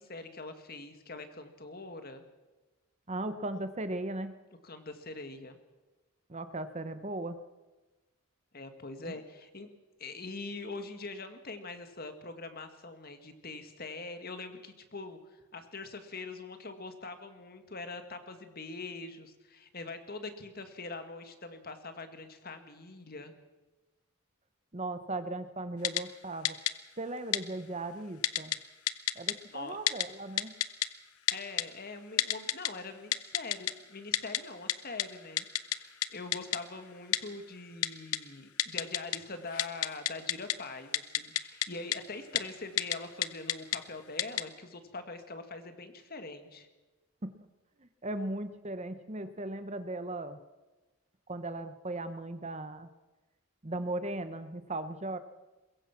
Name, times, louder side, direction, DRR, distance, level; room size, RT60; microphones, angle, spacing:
voice 1, 0.0-2.2 4.6-5.6 8.5-9.7 10.0-23.3 29.5-29.8 31.3-35.4 35.7-46.7, left 3 dB, 45° left, 8 dB, 1.9 m, -43 dB
voice 2, 3.1-4.3 6.3-7.4 9.0-9.1 24.7-26.6 27.0-28.5 29.2-30.5 47.2-47.3 47.8-50.4 51.3-52.9 53.6-55.2, right 2 dB, 30° right, 11 dB, 1.0 m, -37 dB
Typing, 25.8-26.0 26.4-26.7 27.3-27.4 28.2-28.6 28.9-29.3 29.9-30.0 30.4-30.9 31.3-31.6 32.2-32.7 33.1-33.7 34.1-34.4 34.7-34.8 35.0-35.1 35.4-35.8 36.0-36.1 36.3-36.6 37.1-37.2 37.8-38.2 38.6-39.2 39.5-40.5 40.9-41.7 41.9-42.0 42.4-42.5 42.8-43.0 43.2-43.8 44.2-44.4, left 12 dB, 75° left, 0.9 m, -28 dB
22.5 x 22.0 x 6.0 m, 1.2 s
head